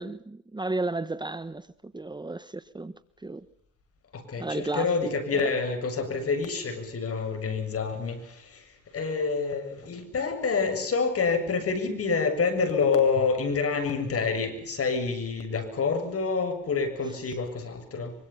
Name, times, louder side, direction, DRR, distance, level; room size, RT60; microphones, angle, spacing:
voice 1, 0.0-2.9 3.2-3.4 4.4-5.5, right 2 dB, 15° right, 1.2 m, -33 dB
voice 2, 4.1-18.1, left 4 dB, 50° left, 7.3 m, -27 dB
25.0 x 24.5 x 5.8 m
cardioid pair, 90°, 30 cm